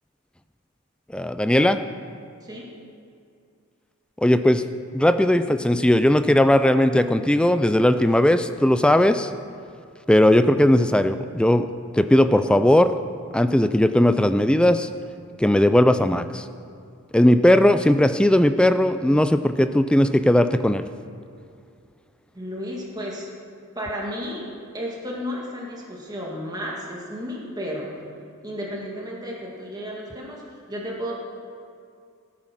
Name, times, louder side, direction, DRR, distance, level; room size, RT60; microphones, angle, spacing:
voice 1, 1.1-1.8 4.2-4.6 4.9-9.3 10.1-11.7 11.9-12.9 13.3-14.9 15.4-16.4 17.1-20.8, left 1 dB, 5° left, 10 dB, 0.3 m, -18 dB
voice 2, 22.3-23.3 23.7-27.9 28.4-31.1, equal, 20° right, -3 dB, 1.9 m, -33 dB
15.0 x 8.9 x 6.1 m, 2.3 s
head